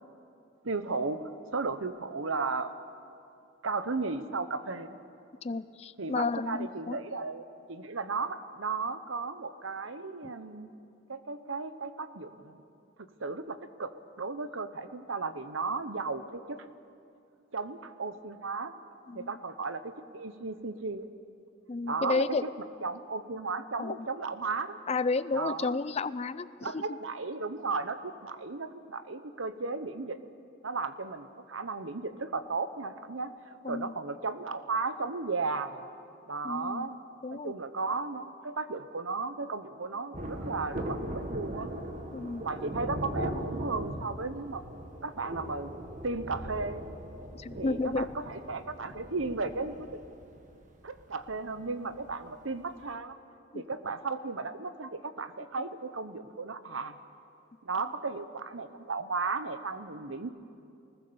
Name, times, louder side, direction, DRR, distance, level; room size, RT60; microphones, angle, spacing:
voice 1, 0.6-2.7 3.6-4.9 6.0-10.7 11.1-12.6 13.2-13.9 14.2-16.6 17.5-18.7 19.1-21.1 21.8-22.2 22.8-24.8 25.3-25.8 26.6-30.2 30.6-35.8 36.3-37.0 37.3-41.7 42.4-44.6 45.0-45.7 46.0-46.8 47.6-50.0 50.8-53.2 53.5-57.0 57.6-60.3, right 4 dB, 80° right, 11 dB, 1.0 m, -35 dB
voice 2, 5.4-7.0 19.1-19.3 21.7-22.4 23.8-24.1 24.9-27.0 33.6-33.9 36.4-36.9 37.2-37.5 42.1-42.4 47.4-48.1 53.5-53.6, left 3 dB, 30° left, 15 dB, 0.5 m, -32 dB
Thunder, 40.1-52.1 52.4-52.5, right 1 dB, 40° right, 1.5 m, -39 dB
21.0 x 20.0 x 7.0 m, 2.6 s
head